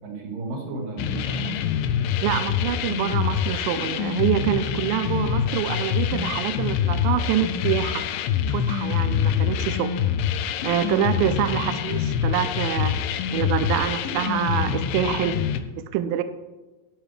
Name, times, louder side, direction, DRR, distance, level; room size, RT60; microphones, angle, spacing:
voice 1, 0.0-1.6 9.0-9.1 11.4-11.8, right 3 dB, 65° right, 0 dB, 3.1 m, -34 dB
sound 1, 1.0-15.6, left 9 dB, 80° left, 2.2 m, -25 dB
voice 2, 2.2-8.1 8.5-9.9 10.6-13.1 13.3-15.4 15.8-16.2, right 11 dB, 80° right, 10 dB, 2.2 m, -26 dB
12.0 x 9.1 x 3.3 m, 1.2 s
omnidirectional pair, 4.4 m